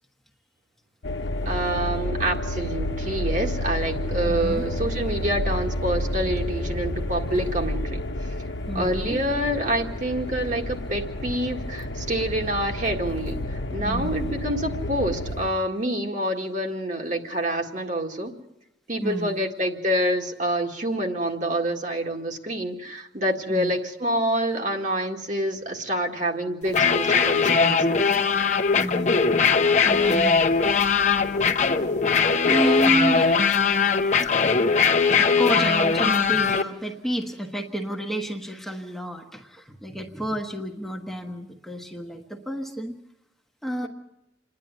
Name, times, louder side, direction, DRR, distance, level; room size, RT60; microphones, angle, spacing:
sound 1, 1.0-15.5, left 1 dB, 80° left, 1.1 m, -30 dB
voice 1, 1.5-8.4 8.7-18.3 18.9-28.0, right 1 dB, 45° right, 2 dB, 1.9 m, -27 dB
voice 2, 4.3-4.6 8.7-9.2 13.8-14.3 19.0-19.5 23.5-23.7 28.8-29.6 29.8-30.4 32.5-33.7 34.0-34.1 35.1-42.9 43.6-43.9, right 1 dB, ahead, 1 dB, 1.2 m, -30 dB
sound 2, 26.6-36.6, left 5 dB, 40° left, 0.9 m, -20 dB
27.5 x 10.5 x 9.4 m, 0.89 s
head